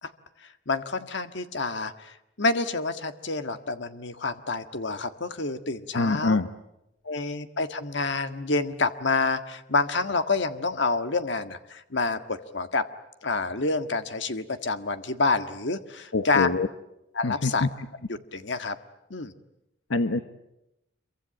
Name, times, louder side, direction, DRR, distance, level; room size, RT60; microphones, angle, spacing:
voice 1, 0.4-6.4 7.0-12.9 13.2-16.5 17.1-17.7 18.1-18.8 19.1-19.3, left 3 dB, 65° left, 9 dB, 1.7 m, -28 dB
voice 2, 5.9-6.5 16.1-16.7 17.2-17.7 19.9-20.2, left 3 dB, 90° left, 10 dB, 1.1 m, -24 dB
26.5 x 24.0 x 8.9 m, 0.87 s
head